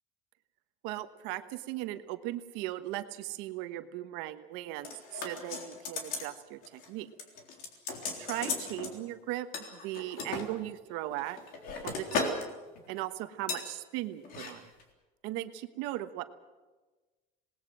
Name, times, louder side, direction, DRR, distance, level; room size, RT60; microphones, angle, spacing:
voice 1, 0.8-7.1 8.2-11.4 11.8-12.4 12.9-14.7 15.2-16.2, right 15 dB, 70° right, 10 dB, 1.3 m, -38 dB
sound 1, 4.8-6.3 6.6-6.9 7.2-8.9 9.5-10.5 11.1-12.5 12.7-13.0 13.5-13.7 14.2-14.5 14.8-14.9, left 4 dB, 50° left, 3.7 m, -36 dB
27.0 x 19.5 x 6.3 m, 1.2 s
cardioid pair, 175°, 20 cm